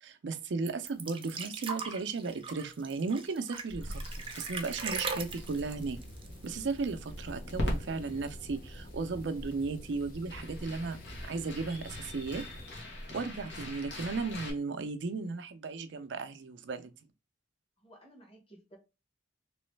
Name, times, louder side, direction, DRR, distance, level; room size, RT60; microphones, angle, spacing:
voice 1, 0.0-6.0 6.4-12.4 13.1-16.9, right 4 dB, 80° right, 0.5 m, -35 dB
sound 1, 0.7-7.1 7.3-7.4 7.8-8.5 9.3-9.4, right 5 dB, 30° right, 0.5 m, -40 dB
Crackle, 3.7-14.5, left 1 dB, 75° left, 1.2 m, -42 dB
sound 2, 4.8-12.8, equal, 50° left, 0.7 m, -49 dB
voice 2, 17.8-18.8, right 1 dB, 35° left, 1.3 m, -56 dB
3.1 x 3.0 x 3.2 m
head